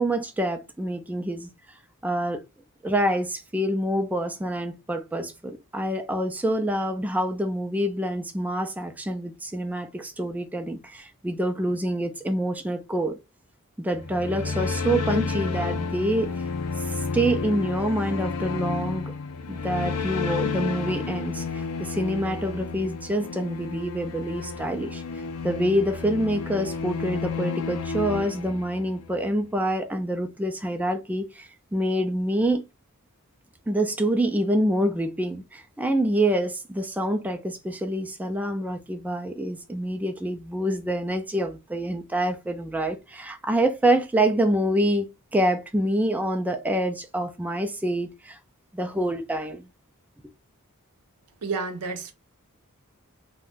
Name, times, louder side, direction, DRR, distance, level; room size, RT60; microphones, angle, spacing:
voice 1, 0.0-1.5 2.0-2.4 2.8-13.2 13.8-16.4 16.8-19.1 19.5-25.0 25.4-32.6 33.7-45.1 45.3-48.4 48.7-49.7, right 1 dB, 5° right, 0.3 m, -26 dB
sound 1, 13.9-29.2, left 4 dB, 80° left, 0.5 m, -31 dB
voice 2, 51.4-52.1, right 4 dB, 90° right, 0.6 m, -30 dB
2.5 x 2.1 x 3.5 m
head